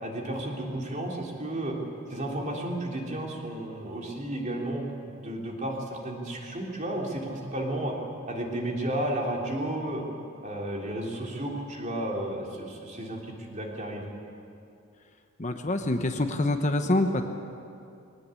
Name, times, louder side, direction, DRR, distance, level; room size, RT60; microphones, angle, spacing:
voice 1, 0.0-1.8 2.1-7.9 8.3-10.0 10.4-14.1, right 1 dB, 35° right, -1 dB, 3.3 m, -33 dB
voice 2, 15.4-17.2, left 1 dB, 35° left, 6 dB, 1.0 m, -26 dB
21.5 x 18.5 x 8.5 m, 2.6 s
head